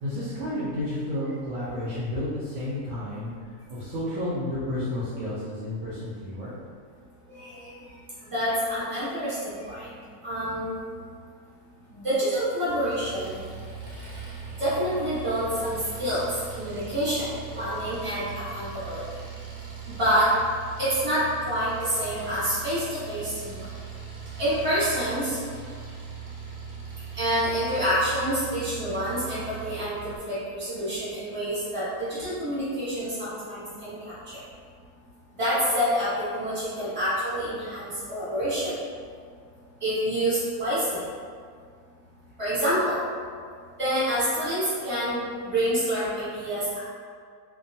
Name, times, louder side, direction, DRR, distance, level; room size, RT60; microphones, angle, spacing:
voice 1, 0.0-3.3 3.7-6.5, left 1 dB, 70° right, -10 dB, 0.9 m, -31 dB
voice 2, 7.3-7.7 8.2-10.0 10.2-10.7 11.9-13.5 14.6-16.2 16.6-19.0 19.9-20.3 20.8-23.7 24.4-25.4 27.2-34.0 34.3-34.4 35.4-38.8 39.8-41.0 42.4-43.0 43.8-46.8, equal, 25° right, -12 dB, 1.1 m, -27 dB
Engine, 12.7-30.2, right 6 dB, 90° right, 1.2 m, -40 dB
2.5 x 2.2 x 2.6 m, 2.1 s
omnidirectional pair, 1.6 m